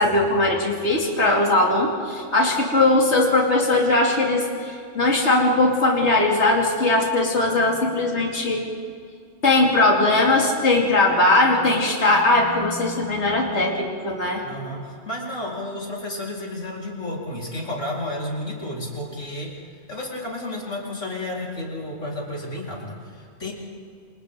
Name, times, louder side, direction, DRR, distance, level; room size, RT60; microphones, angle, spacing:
voice 1, 0.0-8.7 9.4-14.4, left 2 dB, 65° left, -1 dB, 3.1 m, -20 dB
voice 2, 14.4-19.5 19.9-23.5, left 1 dB, 85° left, -4 dB, 4.9 m, -32 dB
28.5 x 27.5 x 3.9 m, 2.3 s
omnidirectional pair, 1.3 m